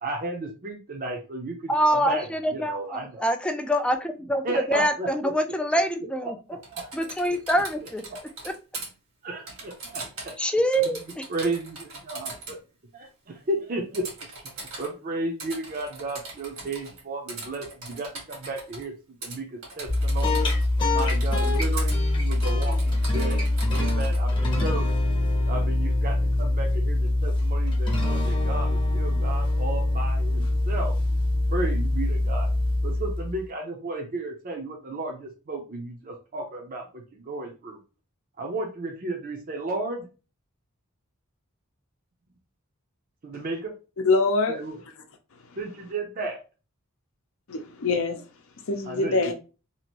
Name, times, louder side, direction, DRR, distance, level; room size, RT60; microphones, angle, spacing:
voice 1, 0.0-3.3 4.4-5.3 6.2-6.9 9.2-10.3 10.8-10.9 11.3-12.6 12.9-14.0 14.8-18.9 19.2-20.4 20.9-23.4 23.7-25.0 25.4-30.9 31.5-32.5 32.8-37.8 38.4-40.1 43.2-43.7 44.5-44.8 45.6-46.4 48.9-49.3, right 2 dB, 40° right, 0.6 m, -33 dB
voice 2, 1.7-6.4 6.9-8.0 8.4-8.5 10.4-11.3, equal, 5° left, 0.3 m, -25 dB
Typing, 6.6-8.9 9.5-10.4 10.7-12.6 13.9-14.9 15.4-17.0 17.3-18.8 19.2-19.4 19.6-20.7 21.0-22.0 22.3-24.2, right 3 dB, 75° right, 1.5 m, -40 dB
sound 1, 19.9-33.4, left 1 dB, 25° left, 0.8 m, -24 dB
voice 3, 44.0-44.6 47.5-48.2 48.7-49.3, left 3 dB, 65° left, 0.6 m, -24 dB
2.8 x 2.5 x 2.9 m
head